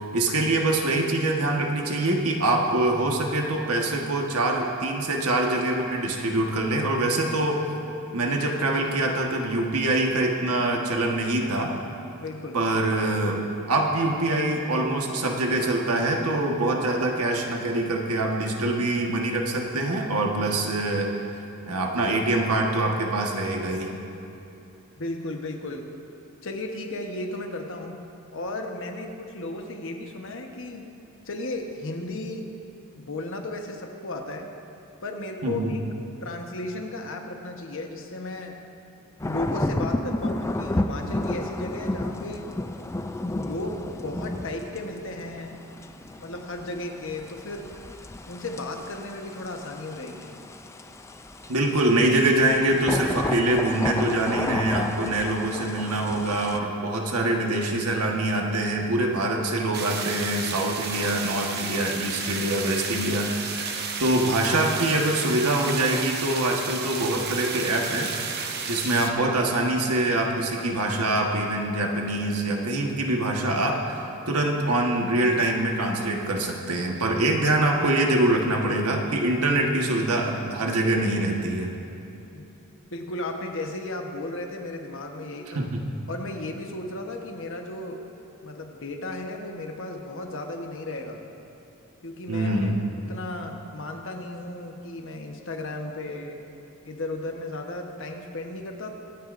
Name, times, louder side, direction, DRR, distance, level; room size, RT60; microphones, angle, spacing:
voice 1, 0.0-7.6 8.1-11.7 12.5-21.1 21.7-23.9 35.4-35.7 51.5-68.1 68.7-74.0 74.3-81.7 85.5-85.8 92.3-92.8, right 2 dB, 85° right, 0 dB, 1.5 m, -24 dB
voice 2, 12.2-12.6 25.0-25.9 26.4-28.0 28.3-30.9 31.2-32.5 32.9-34.5 35.0-35.8 36.2-38.6 39.2-42.5 43.4-45.6 46.2-47.7 48.3-50.3 82.3-82.4 82.9-85.7 86.1-88.1 88.4-91.2 92.0-92.7 93.1-96.4 96.8-98.9, left 2 dB, 60° left, 2 dB, 1.2 m, -35 dB
sound 1, 39.2-56.6, left 1 dB, 15° left, 0.4 m, -32 dB
sound 2, 59.7-69.1, right 5 dB, 50° right, 0.9 m, -32 dB
24.5 x 9.6 x 2.6 m, 2.8 s
head